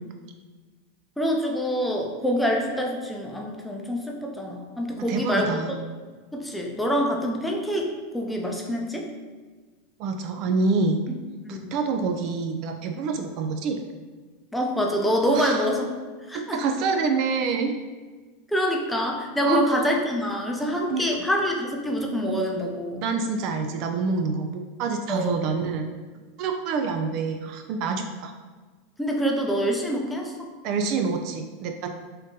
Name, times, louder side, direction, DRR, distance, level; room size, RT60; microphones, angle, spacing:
voice 1, 1.2-5.6 6.3-9.1 11.1-11.2 11.4-11.7 14.5-15.8 16.3-16.6 18.5-23.0 25.1-25.3 29.0-30.5, equal, 5° left, 0 dB, 0.6 m, -26 dB
voice 2, 5.1-5.8 10.0-11.0 11.5-13.8 15.3-15.7 16.3-17.8 19.5-19.6 20.9-21.0 23.0-25.9 26.4-28.3 30.6-31.9, right 4 dB, 55° right, 5 dB, 0.3 m, -27 dB
3.7 x 2.6 x 3.7 m, 1.4 s
supercardioid pair, 120°, 0 cm